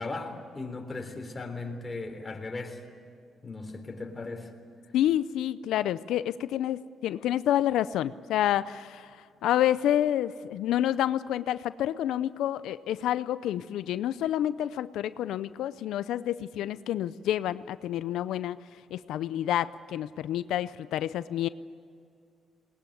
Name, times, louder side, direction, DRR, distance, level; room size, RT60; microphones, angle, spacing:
voice 1, 0.0-2.8 3.4-4.5, left 3 dB, 20° left, 3 dB, 3.6 m, -37 dB
voice 2, 4.9-18.6 18.9-21.5, left 12 dB, 85° left, 15 dB, 0.5 m, -28 dB
20.5 x 19.5 x 9.2 m, 2.4 s
cardioid pair, 90°, 0 cm